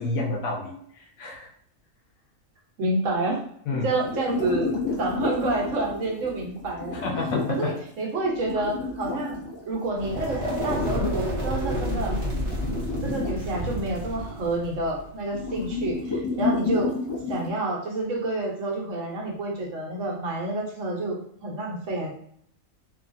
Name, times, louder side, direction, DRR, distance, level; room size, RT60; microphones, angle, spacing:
voice 1, 0.0-1.5 3.7-3.9 7.0-7.7, left 3 dB, 80° left, -2 dB, 1.0 m, -29 dB
voice 2, 2.8-3.4 3.8-4.7 5.0-7.0 7.5-9.4 9.7-12.2 13.0-16.9 17.3-22.1, right 2 dB, 65° right, -1 dB, 1.1 m, -28 dB
sound 1, 3.9-7.6 8.2-11.2 11.8-13.3 15.3-17.5, left 4 dB, 45° left, 0.3 m, -30 dB
sound 2, 9.9-15.9, equal, 25° right, 1.0 m, -30 dB
2.9 x 2.3 x 2.5 m, 0.67 s
omnidirectional pair, 1.4 m